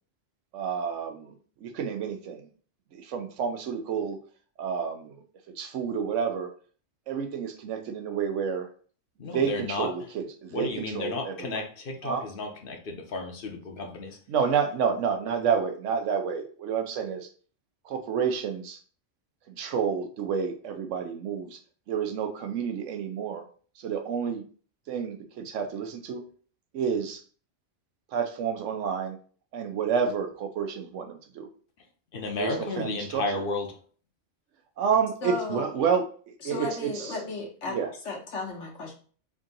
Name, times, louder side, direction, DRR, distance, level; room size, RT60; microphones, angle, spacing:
voice 1, 0.5-2.5 2.9-4.2 4.6-5.2 5.6-6.5 7.1-8.7 9.3-11.6 12.0-12.2 14.3-17.3 17.8-18.8 19.5-21.6 21.9-23.4 23.8-24.4 24.9-26.2 26.7-27.2 28.1-29.2 29.5-31.5 32.3-33.2 34.8-37.2 37.7-37.9, right 6 dB, 85° right, 6 dB, 1.0 m, -29 dB
voice 2, 9.2-9.9 10.5-14.2 32.1-33.8, left 3 dB, 55° left, 3 dB, 0.8 m, -33 dB
voice 3, 35.2-35.6 36.4-37.8 38.0-38.9, left 3 dB, 80° left, 0 dB, 1.3 m, -34 dB
3.6 x 2.6 x 3.9 m, 0.43 s
omnidirectional pair, 1.2 m